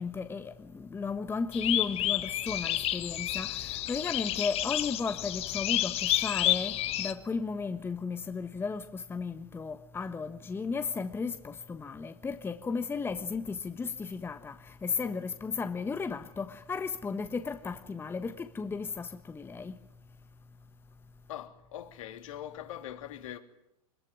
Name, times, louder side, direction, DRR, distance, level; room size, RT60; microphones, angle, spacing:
voice 1, 0.0-19.7, left 4 dB, 10° left, 1.3 m, -35 dB
sound 1, 1.5-7.1, left 14 dB, 35° left, 1.4 m, -30 dB
voice 2, 21.3-23.4, left 11 dB, 60° left, 3.1 m, -42 dB
23.0 x 22.0 x 9.7 m
hypercardioid pair, 110°, 19 cm